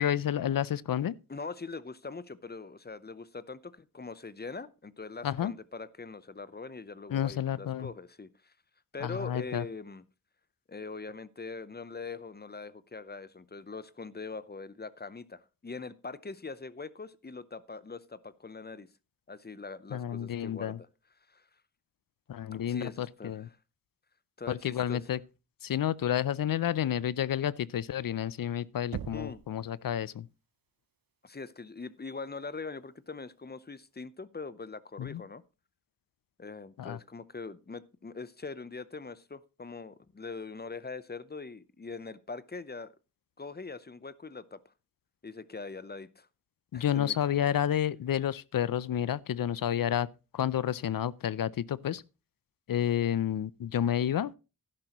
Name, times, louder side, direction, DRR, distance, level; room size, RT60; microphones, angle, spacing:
voice 1, 0.0-1.1 5.2-5.5 7.1-7.9 9.0-9.6 19.9-20.8 22.3-23.5 24.5-25.2 25.6-30.3 35.0-35.2 36.8-37.0 46.7-50.1 50.3-52.0 52.7-54.3, left 10 dB, 75° left, 0.5 m, -30 dB
voice 2, 1.3-8.5 8.9-10.0 10.7-18.9 19.3-20.9 21.3-21.5 22.5-23.5 24.4-25.0 29.1-29.4 31.2-35.4 36.4-42.9 43.4-44.7 45.2-46.3 46.7-47.2, left 4 dB, 30° left, 0.7 m, -42 dB
Knock, 28.9-29.6, right 9 dB, 80° right, 0.7 m, -39 dB
12.0 x 10.5 x 3.0 m
wide cardioid pair, 65°, 34 cm